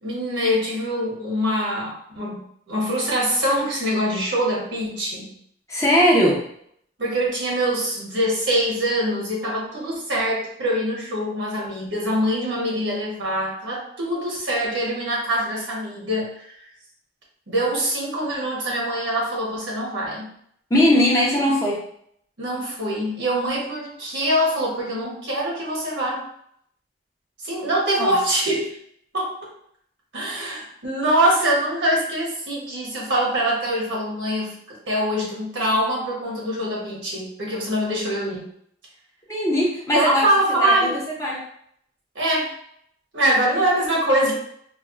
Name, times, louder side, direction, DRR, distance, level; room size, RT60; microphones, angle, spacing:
voice 1, 0.0-5.3 7.0-16.5 17.5-20.3 22.4-26.3 27.4-28.7 29.1-29.5 30.1-38.4 39.9-41.1 42.1-42.5 43.1-44.3, right 1 dB, 70° right, -4 dB, 1.2 m, -24 dB
voice 2, 5.7-6.4 20.7-21.8 28.0-28.2 39.3-40.2 40.6-40.9 41.2-41.4, left 1 dB, 15° left, -4 dB, 0.7 m, -19 dB
4.2 x 2.3 x 2.5 m, 0.68 s
head